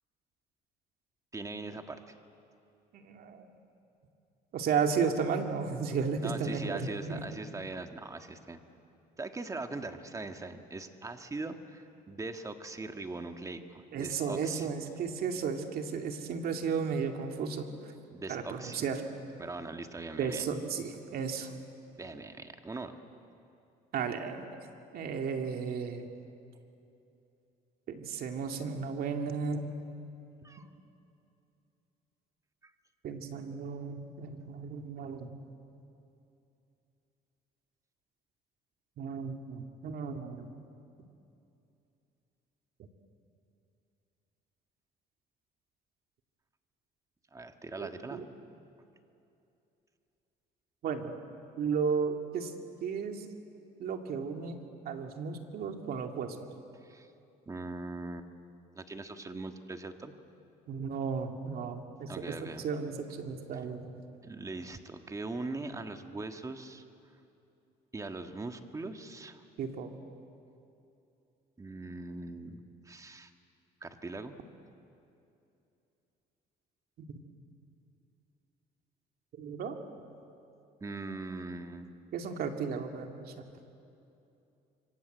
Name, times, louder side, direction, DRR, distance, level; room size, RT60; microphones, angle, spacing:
voice 1, 1.3-2.0 6.2-8.6 9.2-14.7 18.1-18.9 19.4-20.4 22.0-23.0 30.4-30.7 32.6-32.7 47.3-48.2 56.8-57.1 57.5-58.3 58.7-60.1 62.1-62.7 64.2-66.8 67.9-69.4 71.6-73.3 73.8-74.4 80.8-81.8, right 3 dB, 20° right, 6 dB, 1.7 m, -41 dB
voice 2, 2.9-3.5 4.5-7.3 13.9-17.9 18.3-19.0 20.2-21.5 23.9-24.6 24.9-26.0 27.9-29.7 33.0-35.3 39.0-40.6 47.8-48.2 50.8-51.1 51.6-52.5 52.8-53.2 53.8-54.6 54.9-56.4 60.7-63.9 69.6-69.9 77.0-77.2 79.4-79.8 82.1-83.5, right 6 dB, 65° right, 4 dB, 2.5 m, -34 dB
26.5 x 24.5 x 8.1 m, 2.8 s
cardioid pair, 110°, 17 cm